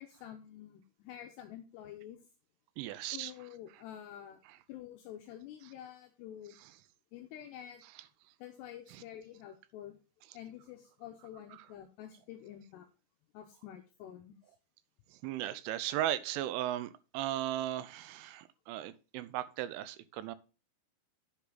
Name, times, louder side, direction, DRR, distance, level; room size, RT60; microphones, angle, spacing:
voice 1, 0.0-2.2 2.9-4.4 4.7-6.6 7.1-7.8 8.4-10.0 10.3-12.9 13.3-14.3, left 11 dB, 90° left, 5 dB, 2.4 m, -48 dB
voice 2, 2.8-3.3 4.5-4.6 6.6-6.7 8.9-9.0 11.5-11.7 15.1-20.4, right 13 dB, 85° right, 14 dB, 3.0 m, -37 dB
8.3 x 5.6 x 3.9 m, 0.33 s
omnidirectional pair, 5.6 m